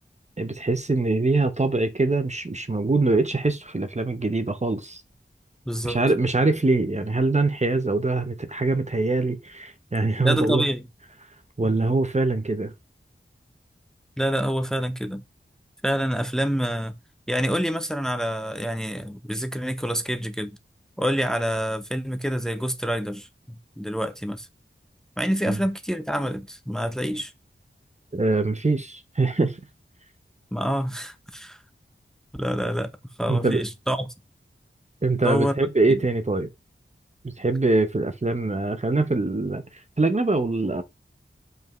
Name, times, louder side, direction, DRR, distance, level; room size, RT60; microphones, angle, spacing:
voice 1, 0.4-5.0 5.8-10.7 11.6-12.7 25.5-25.6 28.1-29.6 33.3-33.6 35.0-36.5 37.2-39.6 40.0-40.8, right 3 dB, 35° right, 0.8 m, -23 dB
voice 2, 5.7-6.0 10.2-10.8 14.2-15.2 15.8-16.9 17.3-20.5 21.0-23.3 23.8-24.5 25.2-27.3 30.5-31.6 32.3-32.9 33.2-34.1 35.2-35.5 35.9-36.0, equal, 5° left, 0.9 m, -27 dB
7.2 x 5.2 x 3.1 m
wide cardioid pair, 55°, 21 cm